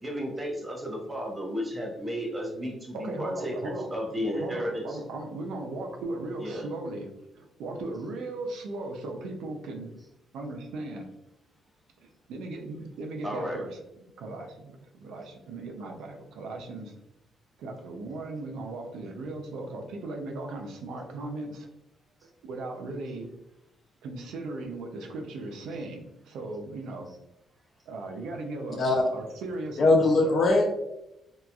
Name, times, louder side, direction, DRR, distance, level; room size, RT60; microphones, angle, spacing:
voice 1, 0.0-5.0 6.4-6.7 13.2-13.6, equal, 15° right, -1 dB, 0.7 m, -33 dB
voice 2, 2.9-3.9 4.3-9.9 10.3-11.1 12.0-16.9 17.6-21.7 22.4-23.3 24.0-27.1 27.9-30.4, right 2 dB, 85° right, 2 dB, 0.4 m, -37 dB
voice 3, 29.8-30.6, left 2 dB, 50° left, 1 dB, 0.4 m, -21 dB
2.8 x 2.3 x 2.3 m, 0.88 s
cardioid pair, 90°, 0 cm